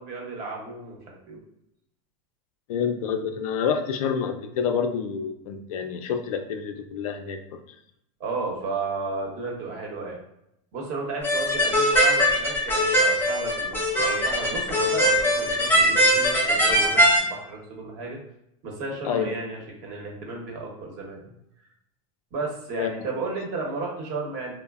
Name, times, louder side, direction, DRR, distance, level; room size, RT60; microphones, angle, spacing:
voice 1, 0.0-1.4 8.2-10.2 10.7-18.2 18.6-21.3 22.3-24.5, right 3 dB, 50° right, -1 dB, 0.9 m, -33 dB
voice 2, 2.7-7.4 19.0-19.3 22.8-22.9, left 7 dB, 85° left, 5 dB, 0.4 m, -28 dB
sound 1, 11.2-17.2, equal, 10° left, 0.5 m, -21 dB
2.9 x 2.0 x 2.3 m, 0.79 s
supercardioid pair, 130°, 18 cm